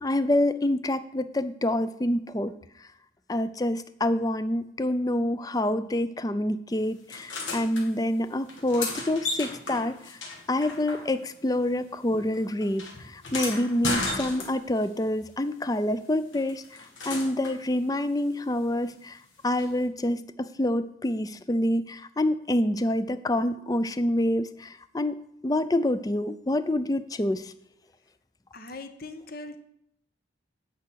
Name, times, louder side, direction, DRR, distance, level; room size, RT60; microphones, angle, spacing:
voice 1, 0.0-2.5 3.3-10.2 10.5-16.6 17.1-19.2 19.4-25.2 25.4-27.5, left 1 dB, 20° left, 13 dB, 0.4 m, -27 dB
sound 1, 7.1-7.8 8.5-11.4 11.7-14.9 16.3-17.6 19.6-19.7, left 3 dB, 85° left, 2.2 m, -34 dB
voice 2, 28.5-29.6, left 2 dB, 50° left, 8 dB, 0.9 m, -40 dB
9.5 x 5.6 x 6.3 m, 0.77 s
head